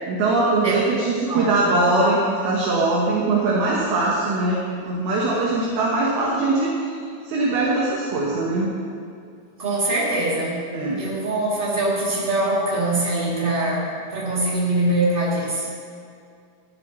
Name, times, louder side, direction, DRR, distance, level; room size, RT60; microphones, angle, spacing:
voice 1, 0.1-4.6 4.9-6.7 7.3-8.7 10.7-11.0, right 2 dB, 65° right, -4 dB, 2.9 m, -21 dB
voice 2, 1.2-1.7 9.6-10.6 11.0-15.7, right 2 dB, 15° right, -7 dB, 1.9 m, -23 dB
14.0 x 13.5 x 3.2 m, 2.4 s
omnidirectional pair, 5.3 m